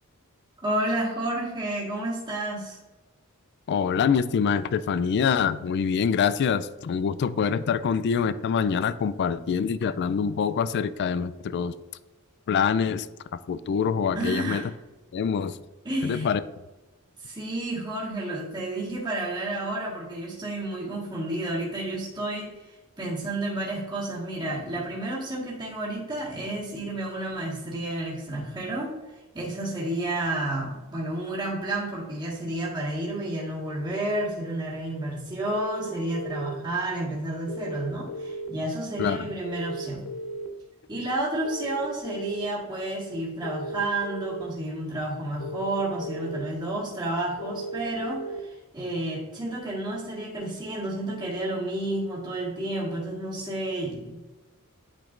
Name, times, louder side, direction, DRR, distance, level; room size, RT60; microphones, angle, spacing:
voice 1, 0.6-2.8 14.1-14.7 15.8-16.3 17.2-22.5 23.0-28.9 29.3-40.0 40.9-54.2, right 1 dB, 20° right, -7 dB, 1.6 m, -31 dB
voice 2, 3.7-11.7 12.5-13.1 13.5-14.6 15.1-15.6 16.0-16.4 39.0-39.3, left 6 dB, 50° left, 15 dB, 0.3 m, -25 dB
sound 1, 35.5-36.5 37.5-38.5 39.5-40.5 41.4-42.5 43.4-44.4 45.4-46.4 47.4-48.4, right 1 dB, 90° left, 0.8 m, -35 dB
8.8 x 5.2 x 2.5 m, 1.1 s
head